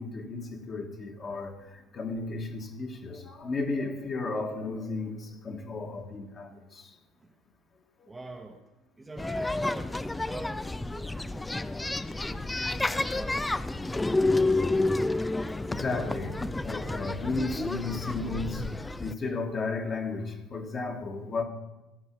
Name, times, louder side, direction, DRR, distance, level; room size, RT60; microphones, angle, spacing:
voice 1, 0.0-7.0 8.0-8.1 11.6-12.0 15.4-21.4, left 3 dB, 35° left, 1.7 m, -34 dB
voice 2, 8.1-8.7 9.0-11.5 12.2-14.7, right 2 dB, 15° right, 0.9 m, -45 dB
sound 1, 9.2-19.1, left 2 dB, 10° left, 0.4 m, -30 dB
15.5 x 5.6 x 4.6 m
hypercardioid pair, 85°, 0 cm